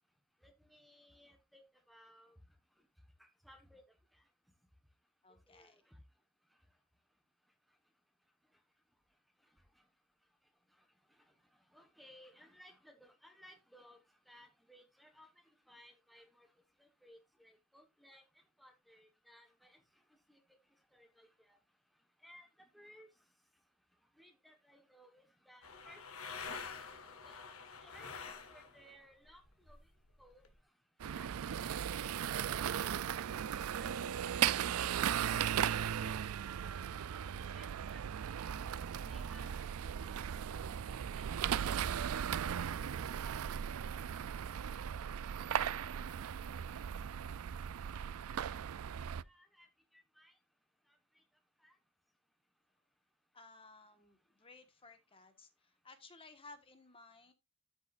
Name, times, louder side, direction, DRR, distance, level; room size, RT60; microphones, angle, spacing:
voice 1, 0.4-2.4 3.2-3.8 4.1-4.2 5.5-6.0 11.1-11.2 11.7-14.0 14.3-15.3 15.7-16.5 16.8-18.2 18.6-19.8 20.3-20.4 20.9-21.6 22.2-23.1 24.2-26.6 27.2-29.8 30.2-30.4 31.1-32.0 32.7-34.9 35.3-36.8 37.6-38.0 39.1-39.7 41.1-42.0 42.3-44.0 44.4-44.5 48.3-48.6 48.9-49.7 49.9-50.3 51.1-51.2 51.6-51.8, equal, ahead, 1.2 m, -62 dB
voice 2, 5.2-5.8 45.3-45.4 53.3-57.3, left 3 dB, 25° left, 1.4 m, -58 dB
sound 1, 25.6-28.9 29.2-30.5, left 5 dB, 85° left, 1.7 m, -47 dB
sound 2, 31.0-49.2, right 9 dB, 85° right, 0.4 m, -37 dB
13.5 x 6.2 x 2.5 m
head